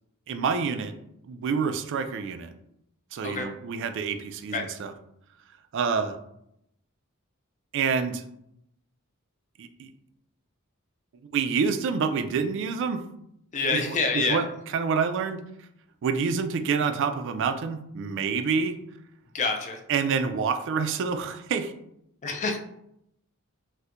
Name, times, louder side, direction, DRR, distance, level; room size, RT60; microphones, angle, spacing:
voice 1, 0.3-0.9 1.2-2.5 3.1-4.9 5.7-6.2 7.7-8.2 9.6-9.9 11.3-13.0 13.7-15.4 16.0-18.8 19.9-21.7, right 5 dB, 60° right, 8 dB, 0.3 m, -27 dB
voice 2, 13.5-14.4 19.3-19.8 22.2-22.6, left 4 dB, 35° left, 4 dB, 0.4 m, -27 dB
4.2 x 2.1 x 2.5 m, 0.77 s
head